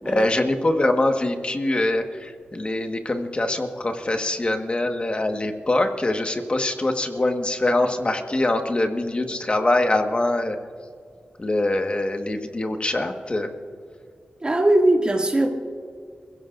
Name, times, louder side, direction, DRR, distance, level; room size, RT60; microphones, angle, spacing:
voice 1, 0.0-10.6 11.4-13.5, left 2 dB, 35° left, 5 dB, 1.6 m, -23 dB
voice 2, 14.4-15.5, right 1 dB, 30° right, 0 dB, 2.5 m, -20 dB
28.5 x 16.0 x 2.6 m, 2.2 s
cardioid pair, 65°, 3 cm